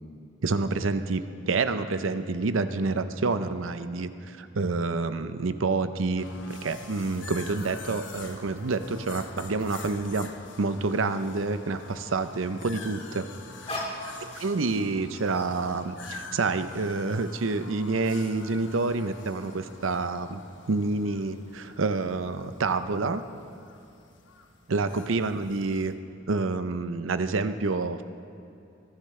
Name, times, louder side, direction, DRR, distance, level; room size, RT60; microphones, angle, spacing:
voice 1, 0.4-10.3 10.6-13.3 14.4-20.4 20.7-23.2 24.7-25.9 26.3-28.1, right 3 dB, 90° right, 11 dB, 0.7 m, -28 dB
sound 1, 6.2-25.9, left 4 dB, 65° left, 1.0 m, -46 dB
sound 2, 6.5-10.8 11.0-12.3 13.1-14.8 15.1-15.4, left 1 dB, 30° left, 2.7 m, -43 dB
21.5 x 13.5 x 3.3 m, 2.7 s
head